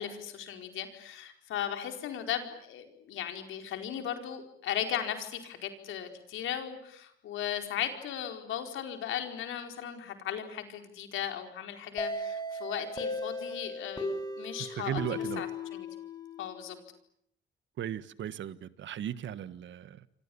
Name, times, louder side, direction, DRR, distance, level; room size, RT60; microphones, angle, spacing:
voice 1, 0.0-15.0 15.4-15.9 16.4-16.8, left 9 dB, 85° left, 4.6 m, -37 dB
sound 1, 12.0-16.7, left 2 dB, 20° left, 5.5 m, -37 dB
voice 2, 14.8-15.4 17.8-20.1, right 10 dB, 70° right, 1.6 m, -36 dB
29.0 x 25.5 x 7.1 m
cardioid pair, 90°, 20 cm